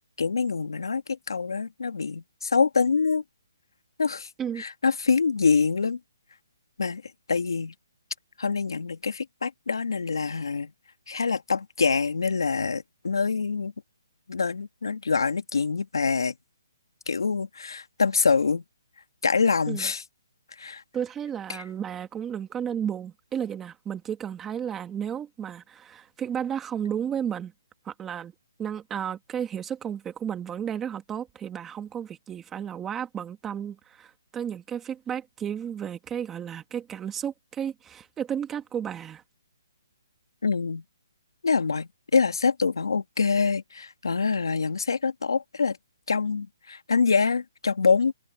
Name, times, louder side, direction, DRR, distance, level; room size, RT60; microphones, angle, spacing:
voice 1, 0.2-3.2 4.0-4.3 4.6-6.0 6.8-7.0 7.3-7.7 8.4-10.7 11.1-13.7 14.3-16.3 17.1-18.6 19.2-20.0 20.6-20.8 21.5-21.6 40.4-40.8 41.4-45.8 46.1-48.1, left 5 dB, 85° left, 2.3 m, -25 dB
voice 2, 20.9-27.5 27.9-28.3 28.6-39.2, right 8 dB, 10° right, 2.0 m, -33 dB
hypercardioid pair, 170°, 2 cm